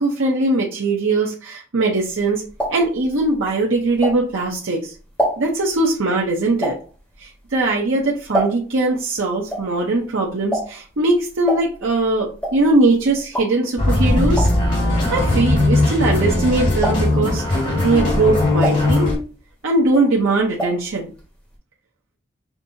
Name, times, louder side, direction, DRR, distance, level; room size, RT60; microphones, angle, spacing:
voice 1, 0.0-2.4 2.7-4.9 5.4-6.8 7.2-14.5 15.1-19.1 19.6-21.1, right 2 dB, 90° right, -2 dB, 0.7 m, -20 dB
sound 1, 2.1-4.6 4.9-8.9 9.1-16.4 16.7-17.3 17.8-19.5 19.8-20.9 21.2-21.3 21.5-21.6, equal, 5° left, 1.5 m, -28 dB
sound 2, 13.8-19.2, left 2 dB, 40° left, 2.1 m, -18 dB
5.9 x 2.7 x 2.7 m, 0.36 s
head